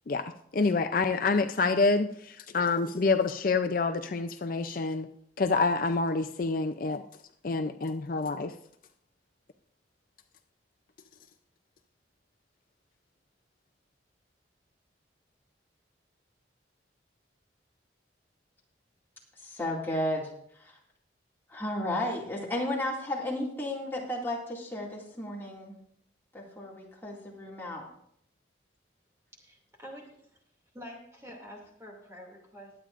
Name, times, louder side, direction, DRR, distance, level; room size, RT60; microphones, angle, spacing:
voice 1, 0.1-5.1 5.4-7.0 7.4-8.5, left 3 dB, 50° left, 8 dB, 0.4 m, -27 dB
voice 2, 19.4-20.3 20.6-20.7 21.5-25.8 26.3-27.8, left 1 dB, 10° left, -3 dB, 2.2 m, -33 dB
voice 3, 29.4-30.4 30.7-32.7, equal, 15° right, -1 dB, 2.5 m, -47 dB
21.5 x 8.9 x 2.5 m, 0.68 s
head